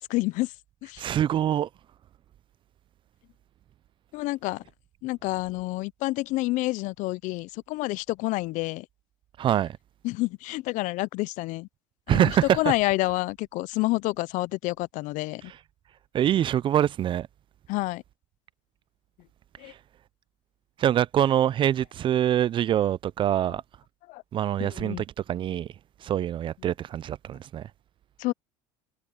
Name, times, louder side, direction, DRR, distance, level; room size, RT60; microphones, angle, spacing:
voice 1, 0.1-0.5 0.8-1.0 4.1-4.6 5.0-8.8 10.0-11.7 12.1-15.5 17.7-18.0 19.6-19.7 24.1-24.2 24.6-25.0 28.2-28.3, left 21 dB, 55° left, 0.6 m, -28 dB
voice 2, 1.0-1.7 9.4-9.8 12.1-12.7 15.4-15.6 16.1-17.3 19.6-19.8 20.8-23.6 24.3-25.7 26.0-27.7, right 11 dB, 30° right, 0.4 m, -25 dB
supercardioid pair, 110°, 16 cm